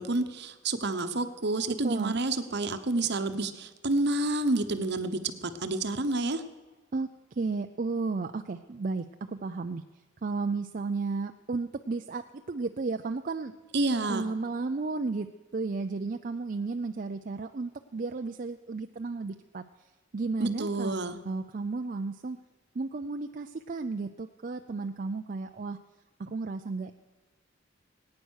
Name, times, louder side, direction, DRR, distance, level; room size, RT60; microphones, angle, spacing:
voice 1, 0.0-6.4 13.7-14.3 20.4-21.2, right 2 dB, 60° right, 9 dB, 1.0 m, -29 dB
voice 2, 1.8-2.1 6.9-9.8 10.2-13.5 14.1-15.3 15.5-19.6 20.1-20.9 21.3-22.4 22.7-25.8 26.2-26.9, right 3 dB, 45° right, 6 dB, 0.5 m, -33 dB
19.5 x 9.5 x 6.4 m, 1.2 s
head